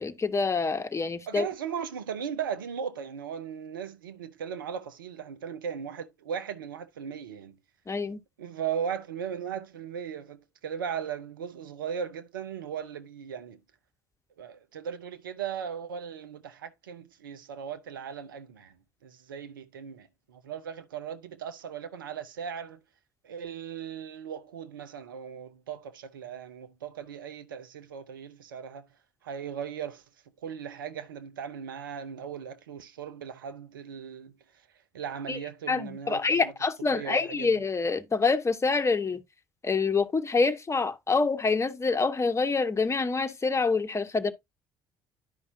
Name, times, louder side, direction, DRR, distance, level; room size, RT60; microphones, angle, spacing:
voice 1, 0.0-1.4 7.9-8.2 35.3-35.4 35.7-39.2 39.6-44.3, left 4 dB, 25° left, 1.2 m, -26 dB
voice 2, 1.3-7.5 8.4-13.6 14.4-18.7 19.0-22.8 23.2-28.8 29.2-30.0 30.4-34.3 34.9-36.5 36.9-37.6, right 7 dB, 85° right, 0.8 m, -37 dB
10.5 x 5.5 x 2.7 m
hypercardioid pair, 55°, 11 cm